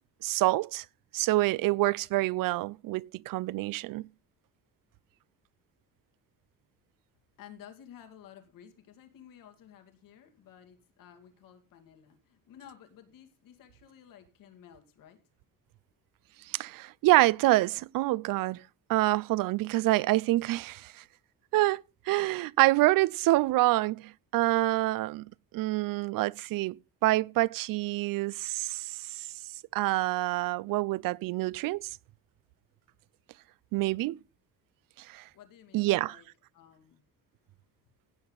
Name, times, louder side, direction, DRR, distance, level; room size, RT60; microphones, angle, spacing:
voice 1, 0.2-0.8 1.1-4.1 16.5-18.6 18.9-21.0 21.5-25.3 25.5-29.3 29.7-31.9 33.7-34.2 35.0-35.2 35.7-36.2, right 18 dB, 80° right, 0.5 m, -27 dB
voice 2, 7.4-15.2 35.3-36.3 36.5-37.0, left 9 dB, 80° left, 2.3 m, -53 dB
16.0 x 8.0 x 3.9 m
cardioid pair, 160°, 33 cm